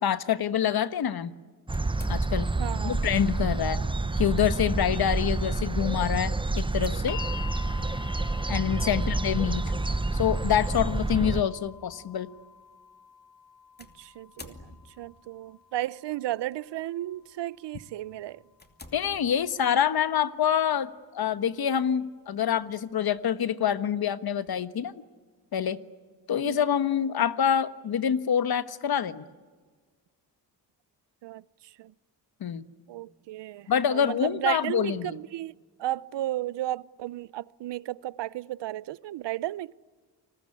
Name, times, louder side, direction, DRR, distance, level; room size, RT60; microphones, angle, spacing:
voice 1, 0.0-1.3 2.1-2.5 2.8-3.8 4.2-7.2 8.5-9.6 10.1-12.3 18.9-24.9 25.5-25.8 26.3-29.2 32.4-32.7 33.7-35.2, left 9 dB, 60° left, 1.4 m, -26 dB
sound 1, 1.7-2.7 4.0-4.3 4.8-4.9 6.6-7.5 9.5-9.8 10.7-10.8 13.8-15.2 16.1-16.5 17.1-17.3 17.8-17.9 18.5-19.8, left 2 dB, 25° left, 2.7 m, -50 dB
sound 2, 1.7-11.4, right 2 dB, 10° right, 0.8 m, -28 dB
voice 2, 2.6-2.9 3.6-3.8 8.8-9.0 14.0-14.6 15.0-18.4 26.4-26.6 31.2-31.4 31.8-31.9 32.9-39.7, right 14 dB, 80° right, 0.7 m, -34 dB
sound 3, 7.1-19.2 20.2-20.3, left 8 dB, 85° left, 2.4 m, -48 dB
29.5 x 20.5 x 9.8 m
cardioid pair, 95°, 42 cm